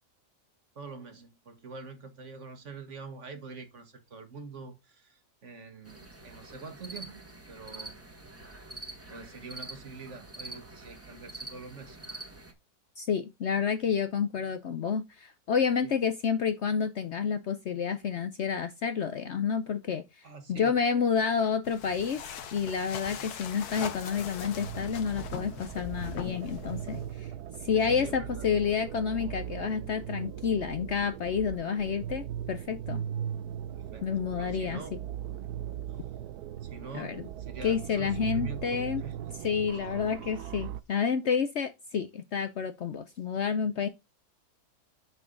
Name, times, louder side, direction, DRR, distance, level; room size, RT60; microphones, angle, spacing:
voice 1, 0.7-8.0 9.1-12.0 15.8-15.9 20.2-20.8 27.7-28.5 33.7-34.1 34.4-35.0 36.6-38.6 39.0-39.2 39.7-39.9, right 4 dB, 50° right, 1.7 m, -45 dB
sound 1, 5.9-12.5, right 2 dB, 10° right, 1.3 m, -46 dB
voice 2, 13.0-20.0 20.5-22.2 22.5-27.3 27.6-33.0 34.0-34.8 36.9-37.2 37.6-39.0 39.4-43.9, left 6 dB, 60° left, 0.8 m, -29 dB
sound 2, 21.6-27.2, left 8 dB, 80° left, 1.5 m, -41 dB
sound 3, 24.4-40.8, right 10 dB, 85° right, 1.2 m, -39 dB
6.8 x 6.1 x 3.7 m
omnidirectional pair, 1.6 m